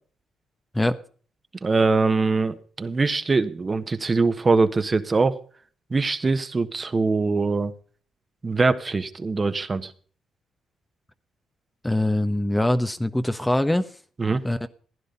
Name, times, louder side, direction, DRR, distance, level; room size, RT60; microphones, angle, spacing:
voice 1, 1.6-5.4 5.9-7.7 8.4-9.9 14.2-14.5, right 3 dB, 35° right, 9 dB, 1.4 m, -22 dB
voice 2, 11.8-14.0 14.4-14.7, left 1 dB, 10° left, 9 dB, 1.2 m, -23 dB
16.0 x 10.0 x 5.5 m, 0.43 s
supercardioid pair, 60°, 0 cm